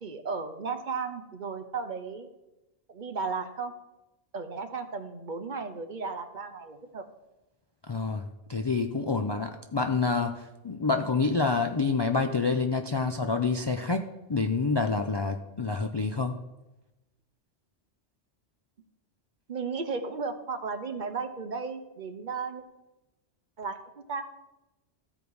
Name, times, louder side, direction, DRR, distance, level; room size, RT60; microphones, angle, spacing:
voice 1, 0.0-2.3 2.9-3.7 4.3-7.0 10.9-11.0 13.0-13.1 19.5-22.6 23.6-24.3, right 4 dB, 50° right, 8 dB, 0.8 m, -35 dB
voice 2, 7.9-8.2 8.5-16.4, left 4 dB, 40° left, 6 dB, 0.3 m, -27 dB
14.0 x 5.1 x 4.7 m, 0.99 s
omnidirectional pair, 1.1 m